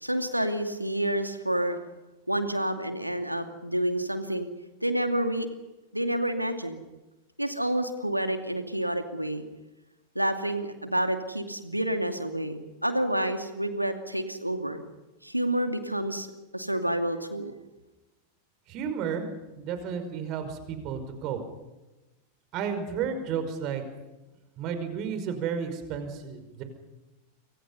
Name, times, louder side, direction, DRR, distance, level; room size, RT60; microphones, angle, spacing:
voice 1, 0.0-1.8 2.3-4.5 4.8-5.5 5.9-6.8 7.4-9.4 10.1-14.8 15.2-16.3 16.5-17.5, right 1 dB, 90° right, 7 dB, 2.5 m, -29 dB
voice 2, 18.7-19.3 19.6-21.4 22.5-23.8 24.6-26.6, right 7 dB, 40° right, 8 dB, 5.5 m, -32 dB
29.0 x 25.0 x 5.6 m, 1.1 s
figure-of-eight pair, 90°, 0 cm